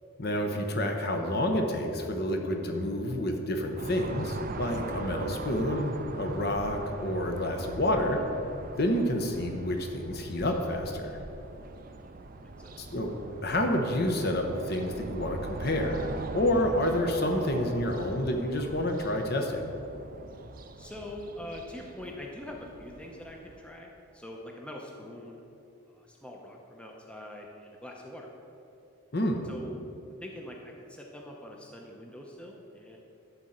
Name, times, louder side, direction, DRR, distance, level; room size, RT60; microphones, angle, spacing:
voice 1, 0.2-5.9 6.2-8.2 8.8-11.2 12.8-13.1 13.4-19.6 29.1-29.4, left 1 dB, 45° left, 3 dB, 0.9 m, -29 dB
sound 1, 3.8-23.6, right 2 dB, 40° right, 0.5 m, -41 dB
voice 2, 12.4-12.9 20.8-25.4 25.9-28.3 29.4-29.8 30.2-33.0, left 1 dB, 5° left, 0 dB, 0.7 m, -44 dB
11.5 x 4.2 x 7.9 m, 2.8 s
head